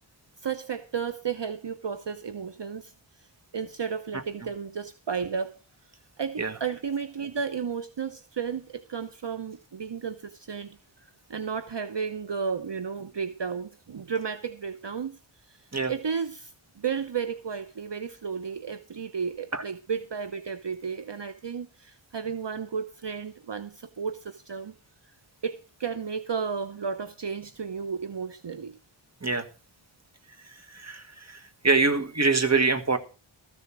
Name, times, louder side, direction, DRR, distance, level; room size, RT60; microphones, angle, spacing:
voice 1, 0.4-3.3 3.5-5.6 6.2-24.7 25.4-28.8, right 6 dB, 55° right, 0.8 m, -33 dB
voice 2, 30.7-31.4 31.6-33.0, right 4 dB, 30° right, 1.5 m, -24 dB
14.0 x 7.0 x 6.1 m
wide cardioid pair, 50°, 50 cm